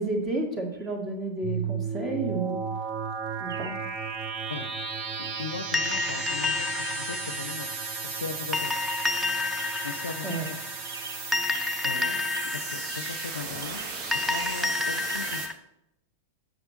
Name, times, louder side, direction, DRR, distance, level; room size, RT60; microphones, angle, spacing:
voice 1, 0.0-2.6 3.4-3.7 10.2-10.5, right 2 dB, 20° right, 2 dB, 1.8 m, -31 dB
Chirp tweet, 0.7-0.9 3.5-3.9 4.6-4.9 5.2-6.9 8.9-9.3 9.6-12.0 12.3-13.3 13.6-14.8 15.0-15.5, right 5 dB, 65° right, 0.7 m, -43 dB
sound 1, 1.4-15.5, right 5 dB, 40° right, 1.1 m, -35 dB
voice 2, 5.2-7.7 8.0-8.8 9.8-10.6 11.8-15.4, left 5 dB, 70° left, 11 dB, 0.5 m, -38 dB
sound 2, 5.7-15.5, left 3 dB, ahead, 0.6 m, -31 dB
7.8 x 6.2 x 4.1 m, 0.82 s
figure-of-eight pair, 90°, 0 cm